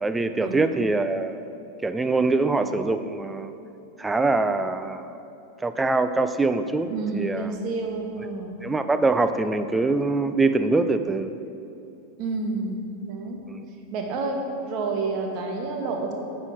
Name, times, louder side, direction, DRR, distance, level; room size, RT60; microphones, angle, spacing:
voice 1, 0.0-1.4 1.8-3.5 4.0-5.1 5.6-6.9 7.1-7.5 8.6-11.3 13.5-13.6, right 3 dB, 10° right, 9 dB, 0.4 m, -23 dB
voice 2, 6.9-8.6 12.2-12.8 13.0-13.4 13.9-14.4 14.7-16.1, right 3 dB, 40° right, 2 dB, 1.3 m, -29 dB
9.6 x 6.2 x 4.8 m, 2.8 s
figure-of-eight pair, 90°, 0 cm